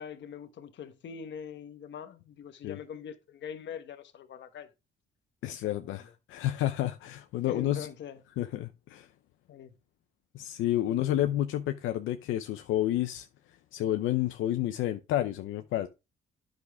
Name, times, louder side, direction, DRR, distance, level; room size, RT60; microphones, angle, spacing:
voice 1, 0.0-4.7 5.4-6.1 7.4-8.2 9.5-9.7 10.9-11.2, left 8 dB, 65° left, 1.2 m, -43 dB
voice 2, 5.4-7.9 8.4-9.1 10.3-13.3 13.7-15.9, left 13 dB, 90° left, 0.7 m, -30 dB
9.7 x 6.4 x 3.5 m
cardioid pair, 90°, 20 cm